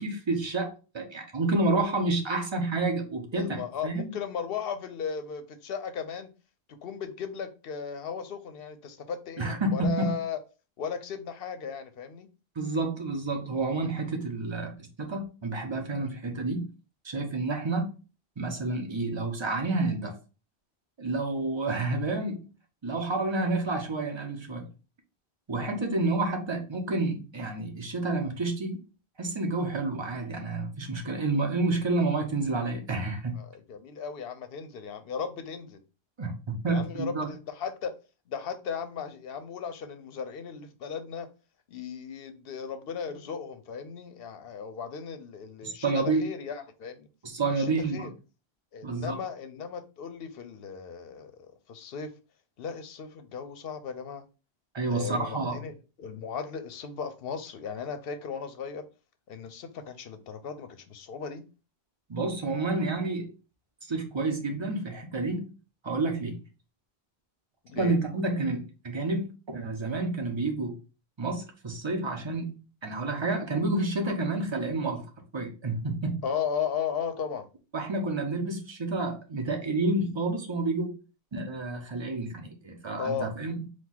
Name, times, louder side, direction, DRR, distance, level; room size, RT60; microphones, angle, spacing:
voice 1, 0.0-4.1 9.4-10.1 12.6-14.7 15.0-16.7 17.0-17.9 18.4-20.2 21.0-22.4 22.8-24.7 25.5-28.8 29.2-33.4 36.2-37.3 45.6-46.2 47.2-48.1 48.8-49.2 54.7-55.6 62.1-63.3 63.9-65.5 65.8-66.4 67.8-70.7 71.2-72.6 72.8-75.0 75.3-76.2 77.7-80.9 81.3-83.7, right 2 dB, 30° right, 0.7 m, -29 dB
voice 2, 3.3-6.3 6.7-10.4 10.8-12.3 33.4-35.8 36.7-37.9 38.3-41.3 41.7-47.1 47.6-48.1 48.7-52.1 52.6-54.3 54.9-58.9 59.3-61.4 67.6-68.0 76.2-77.5 83.0-83.3, left 6 dB, 70° left, 0.8 m, -36 dB
4.5 x 2.3 x 3.8 m
omnidirectional pair, 1.1 m